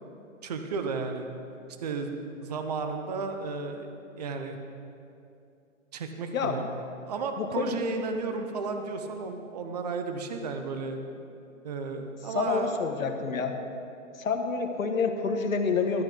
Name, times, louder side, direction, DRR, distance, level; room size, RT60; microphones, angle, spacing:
voice 1, 0.4-1.3 1.8-3.9 4.2-4.6 5.9-6.8 7.1-11.0 11.6-12.8, right 4 dB, 30° right, 6 dB, 0.7 m, -33 dB
voice 2, 6.3-6.7 7.4-7.8 12.3-13.5 14.2-16.0, left 5 dB, 85° left, 5 dB, 1.4 m, -28 dB
13.5 x 8.0 x 5.2 m, 2.6 s
hypercardioid pair, 165°, 40 cm